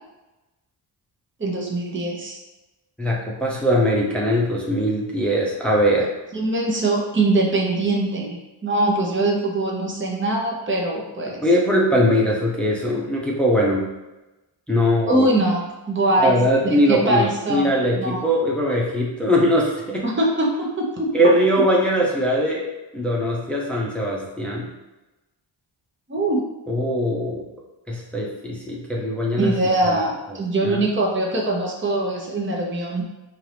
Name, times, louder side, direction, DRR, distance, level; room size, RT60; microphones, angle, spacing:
voice 1, 1.4-2.4 6.3-8.4 8.6-11.4 15.1-18.2 20.0-21.1 26.1-26.4 29.4-33.0, right 2 dB, 25° right, -1 dB, 1.0 m, -22 dB
voice 2, 3.0-6.1 11.4-13.8 14.7-15.3 16.2-20.1 21.1-22.7 22.9-24.7 26.7-27.4 27.9-29.5 29.8-30.0 30.6-30.8, equal, ahead, -3 dB, 0.9 m, -21 dB
4.5 x 2.7 x 3.4 m, 1.1 s
cardioid pair, 60°, 46 cm